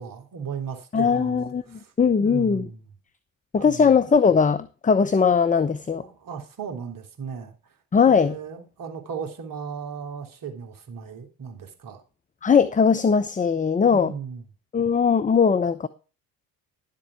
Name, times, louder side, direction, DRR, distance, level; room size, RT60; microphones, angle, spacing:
voice 1, 0.0-1.9 2.2-2.9 3.6-4.0 6.0-7.8 8.1-12.0 13.8-14.5, right 6 dB, 45° right, 3.5 m, -36 dB
voice 2, 0.9-1.6 2.0-2.7 3.5-6.0 7.9-8.3 12.4-14.1 14.7-15.9, left 6 dB, 15° left, 0.7 m, -19 dB
11.5 x 7.6 x 4.7 m
figure-of-eight pair, 50°, 46 cm